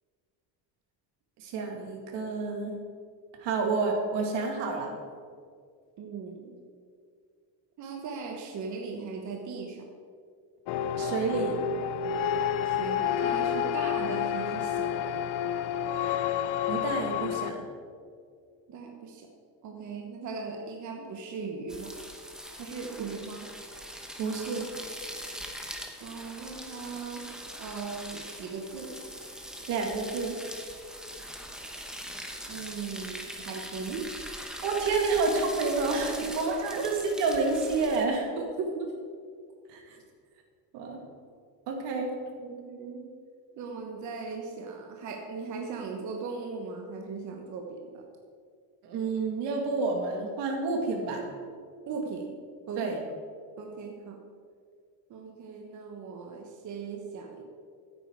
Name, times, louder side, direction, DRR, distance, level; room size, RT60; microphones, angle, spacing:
voice 1, 1.4-2.8 3.4-5.0 11.0-11.6 16.7-17.6 24.2-24.7 29.7-30.3 34.6-38.3 39.7-40.0 40.7-41.0 41.7-42.1 48.8-51.3 52.8-53.0, right 3 dB, 75° right, 2 dB, 2.4 m, -29 dB
voice 2, 6.0-6.6 7.8-9.9 12.6-15.2 18.7-19.3 19.6-22.0 22.6-23.5 26.0-29.0 32.5-34.1 36.2-36.4 36.8-36.9 38.4-38.9 42.4-43.1 43.5-48.1 51.9-52.4 52.7-52.9 53.6-54.2 55.1-57.4, right 4 dB, 45° right, 2 dB, 1.2 m, -38 dB
sound 1, 10.7-17.5, left 8 dB, 70° left, 0.7 m, -29 dB
sound 2, 21.7-38.0, equal, ahead, 1.0 m, -42 dB
14.5 x 8.9 x 4.7 m, 2.2 s
cardioid pair, 160°, 42 cm